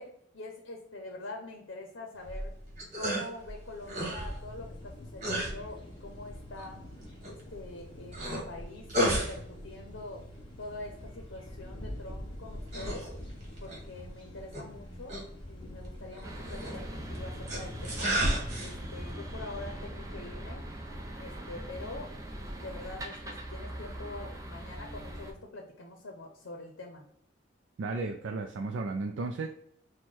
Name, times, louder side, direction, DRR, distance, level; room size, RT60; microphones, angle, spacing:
voice 1, 0.0-2.5 2.9-6.8 7.3-10.3 10.6-13.1 13.6-15.2 15.5-18.1 18.6-20.7 21.2-22.2 22.6-27.0, left 2 dB, 80° left, 2 dB, 0.7 m, -45 dB
sound 1, 2.2-20.9, right 1 dB, 40° right, 1.4 m, -37 dB
sound 2, 3.8-19.1, left 1 dB, 25° left, 0.7 m, -46 dB
sound 3, 16.2-25.3, right 1 dB, 15° right, 0.6 m, -41 dB
voice 2, 27.8-29.5, right 3 dB, 75° right, 4 dB, 0.4 m, -34 dB
4.5 x 2.2 x 4.3 m, 0.69 s
head